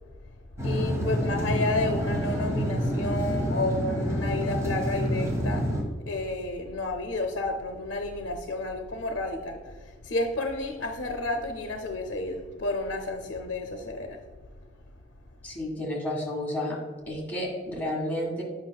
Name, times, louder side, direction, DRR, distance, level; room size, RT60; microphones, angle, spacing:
voice 1, 0.6-5.7 6.1-14.2, left 2 dB, 80° left, 4 dB, 0.6 m, -31 dB
sound 1, 0.6-5.8, equal, 15° right, 1.4 m, -28 dB
voice 2, 15.4-16.8 17.1-18.4, left 1 dB, 10° left, -4 dB, 1.7 m, -31 dB
7.9 x 5.6 x 2.3 m, 1.5 s
head